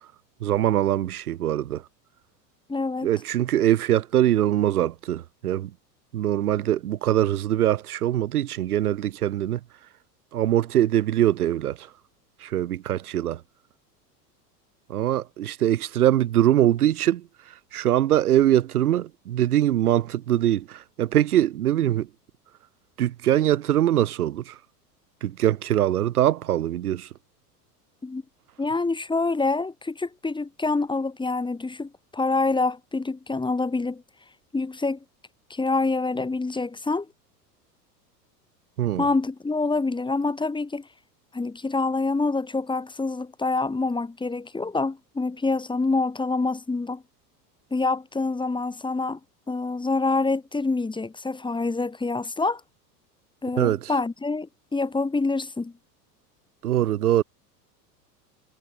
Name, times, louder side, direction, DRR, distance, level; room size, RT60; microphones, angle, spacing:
voice 1, 0.4-1.8 3.0-5.7 6.1-9.6 10.3-11.9 12.4-13.4 14.9-17.2 17.7-22.1 23.0-24.6 25.2-27.1 38.8-39.1 53.6-53.9 56.6-57.2, right 12 dB, 65° right, 2.0 m, -22 dB
voice 2, 2.7-3.1 28.0-28.2 28.6-34.0 34.5-35.0 35.5-37.1 39.0-40.9 41.3-47.0 47.7-49.2 49.5-52.6 53.4-55.7, left 3 dB, 10° left, 2.9 m, -26 dB
figure-of-eight pair, 80°, 48 cm